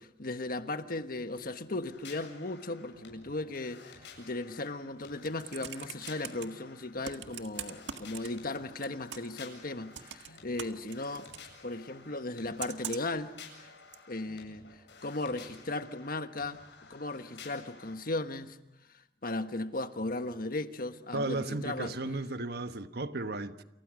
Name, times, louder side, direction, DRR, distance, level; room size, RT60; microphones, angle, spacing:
voice 1, 0.0-11.3 11.6-13.3 13.6-13.7 14.1-14.7 15.0-16.6 16.9-18.6 19.2-21.9, left 2 dB, 55° left, 1.4 m, -36 dB
sound 1, 1.8-17.9, left 5 dB, 85° left, 7.9 m, -53 dB
Computer keyboard, 5.0-6.5 7.0-8.6 8.8-9.4 9.9-11.5 12.6-13.2 13.9-14.0, right 9 dB, 80° right, 1.8 m, -42 dB
voice 2, 21.1-23.6, right 2 dB, 60° right, 1.3 m, -34 dB
29.0 x 29.0 x 6.4 m
head